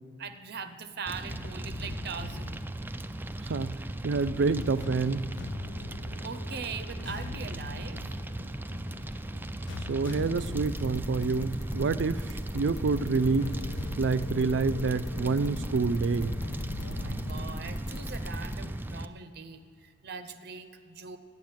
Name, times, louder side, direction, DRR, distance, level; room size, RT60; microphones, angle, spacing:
voice 1, 0.2-2.6 6.2-8.0 16.8-21.2, right 5 dB, 60° right, 10 dB, 0.7 m, -41 dB
sound 1, 0.8-17.8, left 5 dB, 85° left, 0.4 m, -44 dB
Fire, 1.1-19.1, right 1 dB, 10° right, 0.4 m, -37 dB
voice 2, 3.4-5.3 9.9-13.6 14.0-16.3, right 4 dB, 85° right, 15 dB, 0.4 m, -28 dB
sound 2, 10.4-18.5, equal, 20° left, 1.3 m, -38 dB
12.5 x 7.5 x 9.1 m, 2.3 s
head